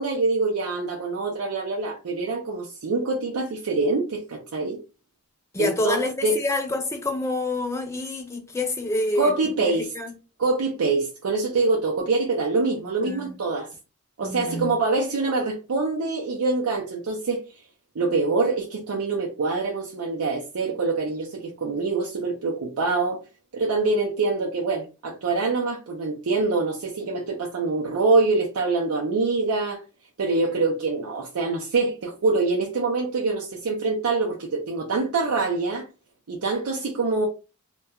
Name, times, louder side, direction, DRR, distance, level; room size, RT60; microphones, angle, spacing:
voice 1, 0.0-4.8 5.6-6.4 9.2-9.9 10.4-13.7 14.2-17.4 17.9-23.2 23.5-29.8 30.2-35.9 36.3-37.3, right 3 dB, 80° right, 0.5 m, -25 dB
voice 2, 5.5-9.3 9.6-10.1 13.1-13.3 14.2-14.7, left 2 dB, 10° left, 0.4 m, -27 dB
2.2 x 2.2 x 2.8 m
head